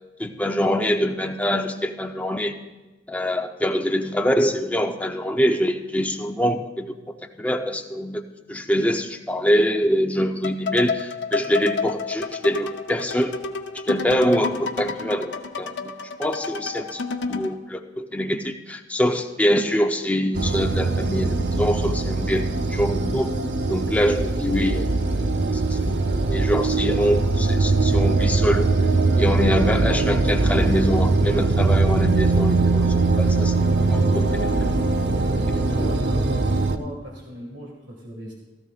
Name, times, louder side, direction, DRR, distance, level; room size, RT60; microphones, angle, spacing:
voice 1, 0.2-2.6 3.1-6.9 7.4-8.2 8.5-13.3 13.8-15.9 16.2-17.0 17.3-23.3 23.7-24.9 25.7-26.0 26.3-28.8 29.2-34.3 35.8-35.9, equal, 10° left, 3 dB, 0.7 m, -24 dB
sound 1, 10.4-17.6, left 4 dB, 75° left, 0.7 m, -30 dB
sound 2, 20.3-36.8, right 3 dB, 70° right, 0.7 m, -21 dB
voice 2, 34.2-34.6 35.6-38.3, equal, 85° right, -2 dB, 1.9 m, -37 dB
16.0 x 13.5 x 2.4 m, 1.2 s
head